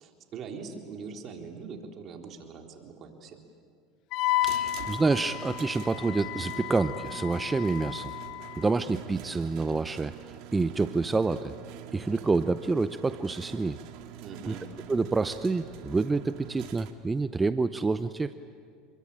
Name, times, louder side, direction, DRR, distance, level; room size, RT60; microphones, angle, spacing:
voice 1, 0.0-3.4 14.2-14.6, right 5 dB, 45° right, 2 dB, 3.6 m, -42 dB
Wind instrument woodwind instrument, 4.1-8.7, left 15 dB, 60° left, 0.8 m, -33 dB
voice 2, 4.4-8.1 8.5-11.5 11.9-13.8 14.5-14.6 14.9-18.3, right 3 dB, 15° right, 12 dB, 0.7 m, -28 dB
sound 1, 4.4-16.9, right 11 dB, 65° right, 2.2 m, -45 dB
28.5 x 22.5 x 8.8 m, 2.2 s
supercardioid pair, 105°, 0 cm